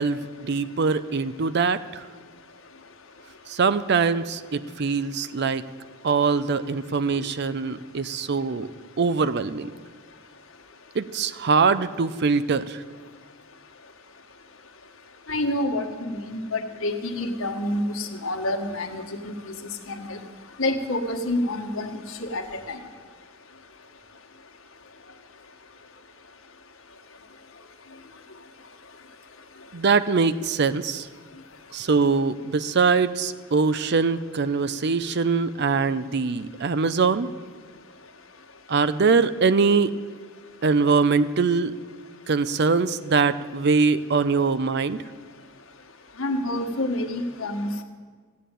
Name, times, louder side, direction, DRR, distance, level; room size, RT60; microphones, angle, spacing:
voice 1, 0.0-2.0 3.5-5.6 6.0-8.7 9.0-9.7 10.9-12.8 29.7-31.1 31.7-37.3 38.7-39.9 40.6-41.8 42.3-45.0, right 4 dB, 55° right, 14 dB, 0.6 m, -23 dB
voice 2, 15.3-19.5 19.9-20.2 20.6-21.9 22.2-22.8 46.2-47.8, left 1 dB, 90° left, 4 dB, 1.5 m, -28 dB
15.5 x 8.5 x 9.1 m, 1.5 s
head